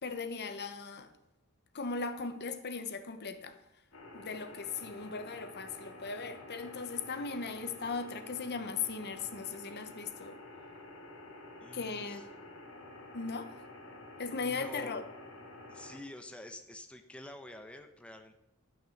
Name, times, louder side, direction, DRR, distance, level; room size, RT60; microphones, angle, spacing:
voice 1, 0.0-1.1 1.7-3.6 4.1-10.4 11.7-12.2 13.1-13.7 14.2-15.0, left 4 dB, 50° left, 10 dB, 1.0 m, -38 dB
sound 1, 3.9-16.0, left 2 dB, 65° left, 2.8 m, -50 dB
voice 2, 11.6-12.2 14.4-14.9 15.7-18.4, left 1 dB, 5° left, 5 dB, 0.8 m, -48 dB
12.0 x 6.1 x 7.1 m, 0.91 s
head